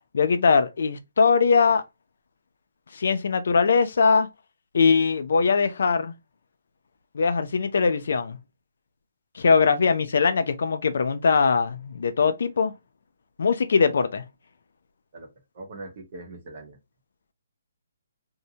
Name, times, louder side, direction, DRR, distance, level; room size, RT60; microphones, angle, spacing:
voice 1, 0.1-1.8 2.9-4.3 4.7-6.1 7.1-8.4 9.4-12.7 13.4-14.2, left 5 dB, 60° left, 0.4 m, -21 dB
voice 2, 15.5-16.8, right 2 dB, 40° right, 0.8 m, -41 dB
2.7 x 2.0 x 2.7 m
hypercardioid pair, 170°, 0 cm